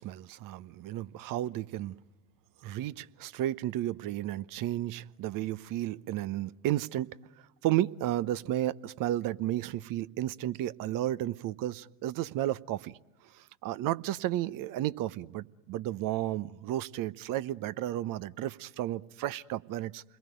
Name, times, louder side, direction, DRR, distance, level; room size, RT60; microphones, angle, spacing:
voice 1, 0.0-1.9 2.6-7.1 7.6-13.0 13.3-20.0, right 13 dB, 50° right, 17 dB, 1.0 m, -33 dB
29.5 x 22.0 x 9.2 m, 1.1 s
hypercardioid pair, 75°, 42 cm